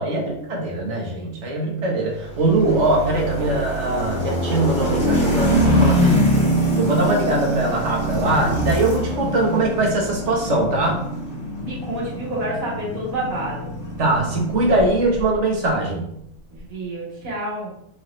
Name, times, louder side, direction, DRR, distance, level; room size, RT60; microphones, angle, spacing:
voice 1, 0.0-6.4 6.8-11.0 14.0-16.1, right 2 dB, 60° right, 0 dB, 1.3 m, -21 dB
sound 1, 2.2-15.3, equal, 40° left, 1.9 m, -24 dB
voice 2, 11.6-13.7 16.5-17.7, right 1 dB, 75° right, -5 dB, 1.9 m, -29 dB
4.7 x 3.1 x 3.1 m, 0.76 s
omnidirectional pair, 1.4 m